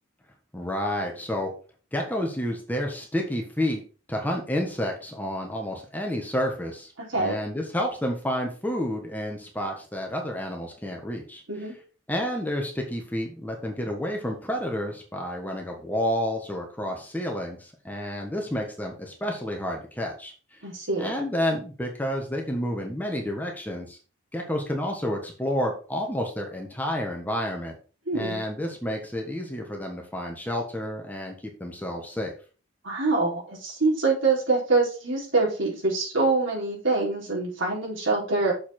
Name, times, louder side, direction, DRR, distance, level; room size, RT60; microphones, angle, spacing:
voice 1, 0.5-1.5 1.9-3.8 4.1-6.9 7.2-11.4 12.1-20.3 21.0-24.0 24.3-27.8 28.1-31.3 31.6-32.3, equal, 10° left, 1 dB, 1.4 m, -30 dB
voice 2, 7.1-7.4 11.5-11.7 20.6-21.1 28.1-28.4 32.8-38.5, right 3 dB, 75° right, -3 dB, 3.9 m, -25 dB
6.8 x 5.6 x 4.4 m, 0.37 s
head